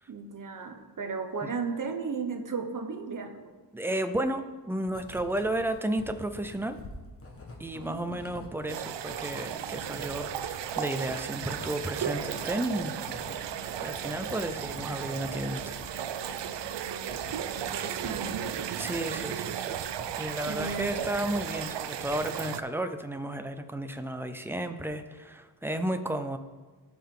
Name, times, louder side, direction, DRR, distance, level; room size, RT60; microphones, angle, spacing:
voice 1, 0.1-3.5 7.7-8.4 16.7-18.6 20.5-21.1, right 5 dB, 50° right, 6 dB, 1.0 m, -36 dB
voice 2, 3.7-6.8 7.6-15.8 18.8-19.8 20.2-26.4, right 1 dB, 5° right, 8 dB, 0.4 m, -33 dB
Writing, 4.9-21.4 21.7-22.4, left 2 dB, 35° left, 1.5 m, -47 dB
sound 1, 8.7-22.6, right 9 dB, 90° right, 0.6 m, -35 dB
16.5 x 5.6 x 3.8 m, 1.3 s
wide cardioid pair, 175°, 41 cm